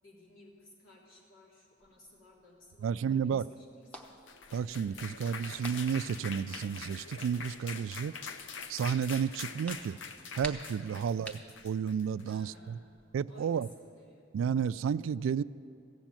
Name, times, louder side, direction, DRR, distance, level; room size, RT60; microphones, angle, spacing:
voice 1, 0.0-4.1 12.2-12.9 13.3-14.4, left 1 dB, 85° left, -4 dB, 3.4 m, -58 dB
sound 1, 1.8-13.0, right 1 dB, 5° left, 0.8 m, -53 dB
voice 2, 2.8-3.5 4.5-8.1 8.7-10.0 10.4-11.4 11.6-12.5 13.1-13.7 14.3-15.4, right 7 dB, 85° right, 18 dB, 0.3 m, -31 dB
sound 2, 4.1-12.3, left 5 dB, 65° left, 0.7 m, -44 dB
15.0 x 7.3 x 9.0 m, 2.5 s
head